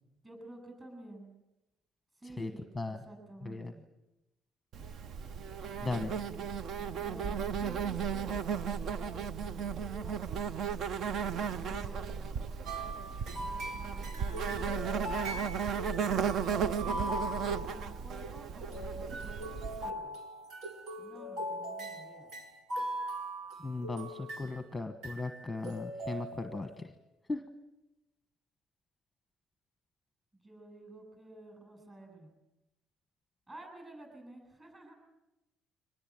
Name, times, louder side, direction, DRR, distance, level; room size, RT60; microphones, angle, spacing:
voice 1, 0.2-1.3 2.2-3.8 6.2-10.2 10.5-12.3 13.7-15.5 16.0-17.3 17.6-19.5 19.7-20.2 21.0-22.3 30.3-32.3 33.5-34.9, right 1 dB, 20° right, 3 dB, 8.0 m, -51 dB
voice 2, 2.4-3.0 3.4-3.7 5.8-6.1 23.6-26.9 27.3-27.4, left 3 dB, 10° left, 7 dB, 1.2 m, -37 dB
Insect, 4.7-19.9, right 7 dB, 50° right, 0.8 m, -35 dB
sound 1, 12.7-18.3 18.6-24.6 25.0-25.4 25.6-26.8, right 1 dB, 75° right, 4.3 m, -40 dB
24.5 x 19.5 x 9.0 m, 0.97 s
cardioid pair, 145°, 0 cm